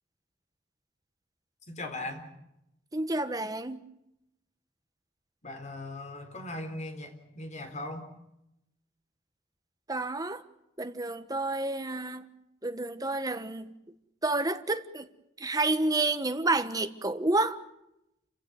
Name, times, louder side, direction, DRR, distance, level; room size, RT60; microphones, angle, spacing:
voice 1, 1.7-2.3 5.4-8.1, left 2 dB, 40° left, 3.8 m, -39 dB
voice 2, 2.9-3.8 9.9-10.4 10.8-12.3 12.6-13.7 14.2-15.1 15.4-17.6, right 2 dB, 20° right, 1.3 m, -29 dB
28.5 x 16.0 x 9.4 m
head